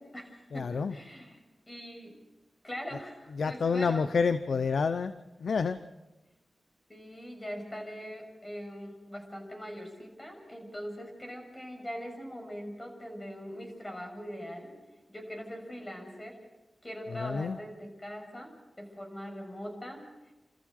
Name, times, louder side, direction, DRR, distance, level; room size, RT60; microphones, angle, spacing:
voice 1, 0.0-0.6 0.9-2.1 2.6-4.0 6.9-14.7 15.1-16.3 16.8-20.0, equal, 25° left, 2 dB, 6.6 m, -42 dB
voice 2, 0.5-1.0 3.4-5.1 5.4-5.8 17.1-17.6, left 5 dB, 80° left, 12 dB, 0.6 m, -28 dB
28.5 x 14.0 x 6.5 m, 1.0 s
cardioid pair, 50°, 0 cm